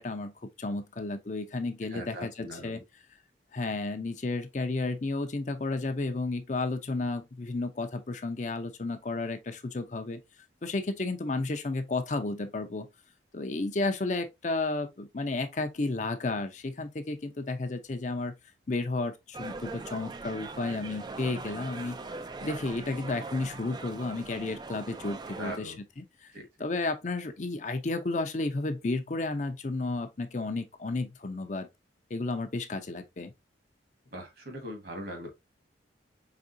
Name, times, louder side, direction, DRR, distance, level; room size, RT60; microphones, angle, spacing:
voice 1, 0.0-2.8 3.5-10.2 10.6-12.9 13.3-18.3 18.7-22.0 22.4-26.3 26.6-31.7 32.1-33.3, left 3 dB, 40° left, 0.5 m, -32 dB
voice 2, 1.9-2.8 25.4-25.8 26.3-26.5 34.1-35.3, equal, 55° right, 1.5 m, -40 dB
sound 1, 19.3-25.6, right 3 dB, 20° right, 0.3 m, -41 dB
4.9 x 3.5 x 2.6 m
head